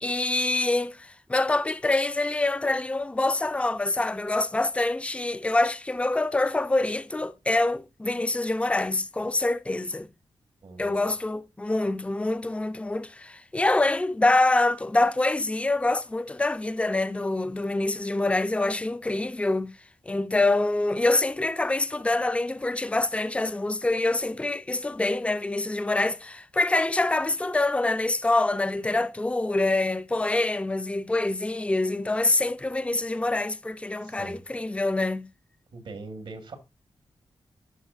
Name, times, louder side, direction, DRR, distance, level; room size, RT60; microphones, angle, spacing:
voice 1, 0.0-10.1 10.8-19.7 20.1-35.3, left 2 dB, 15° left, 0.5 m, -25 dB
voice 2, 10.6-11.0 34.0-34.4 35.7-36.6, right 3 dB, 75° right, 1.6 m, -41 dB
12.0 x 4.1 x 2.5 m
cardioid pair, 75°, 9 cm